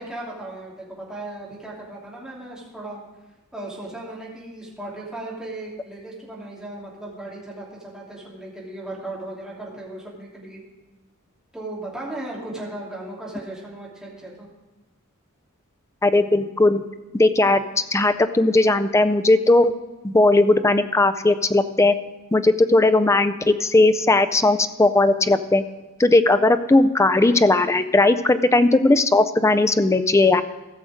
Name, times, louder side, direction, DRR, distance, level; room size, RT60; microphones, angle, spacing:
voice 1, 0.0-3.0 3.5-10.6 11.5-14.5, right 2 dB, 5° right, -6 dB, 2.9 m, -36 dB
voice 2, 16.0-16.8 17.1-17.6 17.9-19.7 20.0-22.0 22.3-25.6 26.0-30.4, left 2 dB, 15° left, 11 dB, 0.4 m, -17 dB
15.0 x 6.5 x 5.0 m, 1.2 s
head